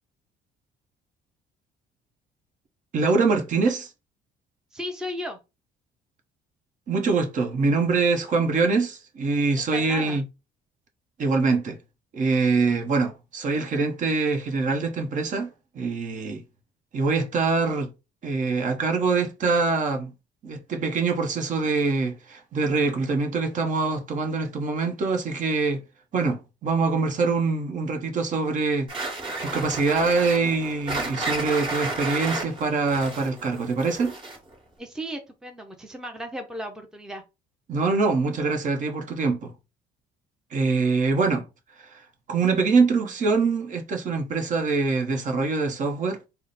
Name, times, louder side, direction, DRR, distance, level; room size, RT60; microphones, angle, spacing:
voice 1, 2.9-3.9 6.9-10.2 11.2-11.8 12.1-15.5 15.7-16.4 16.9-17.9 18.2-20.1 20.4-25.8 26.1-28.9 29.4-34.1 37.7-39.5 40.5-41.4 41.9-42.0 42.3-46.2, right 4 dB, 50° right, 0.9 m, -24 dB
voice 2, 4.7-5.4 9.6-10.2 34.8-37.2, equal, 5° right, 0.6 m, -35 dB
sound 1, 28.9-34.5, right 2 dB, 30° right, 1.7 m, -32 dB
3.7 x 2.1 x 4.0 m
cardioid pair, 110°, 17 cm